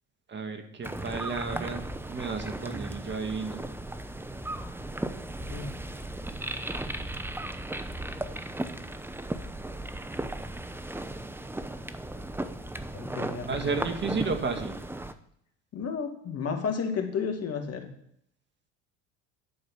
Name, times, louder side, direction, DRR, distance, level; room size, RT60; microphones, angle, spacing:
voice 1, 0.3-1.8 2.1-3.6 13.5-14.7, right 4 dB, 30° right, 6 dB, 1.9 m, -32 dB
sound 1, 0.8-15.1, right 1 dB, 5° right, 0.9 m, -36 dB
voice 2, 12.9-13.8 15.7-17.9, left 6 dB, 45° left, 5 dB, 2.3 m, -32 dB
11.0 x 6.7 x 5.6 m, 0.71 s
hypercardioid pair, 75°, 35 cm